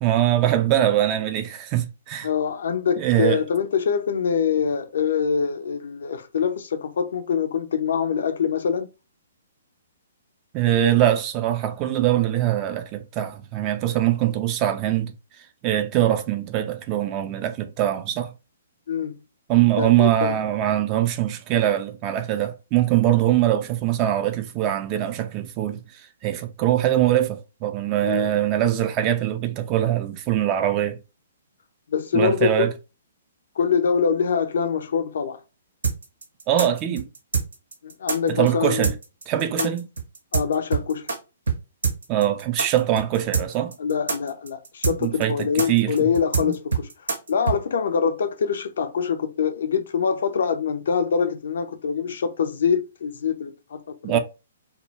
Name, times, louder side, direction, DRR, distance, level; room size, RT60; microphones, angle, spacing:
voice 1, 0.0-2.3 3.0-3.4 10.5-15.1 15.6-18.3 19.5-25.8 26.2-31.0 32.1-32.7 36.5-37.1 38.3-38.9 39.3-39.8 42.1-43.7 45.0-46.1 46.4-46.5 54.0-54.2, right 12 dB, 30° right, 0.4 m, -22 dB
voice 2, 2.2-8.9 18.9-19.1 19.8-20.4 28.0-28.3 31.9-32.7 33.6-35.4 37.8-38.9 39.6-39.7 40.3-41.1 43.8-46.9 47.3-54.2, left 6 dB, 60° left, 0.4 m, -24 dB
sound 1, 35.8-41.2 41.5-41.6 41.8-47.6, right 5 dB, 70° right, 0.6 m, -25 dB
2.1 x 2.0 x 3.2 m
figure-of-eight pair, 120°, 0 cm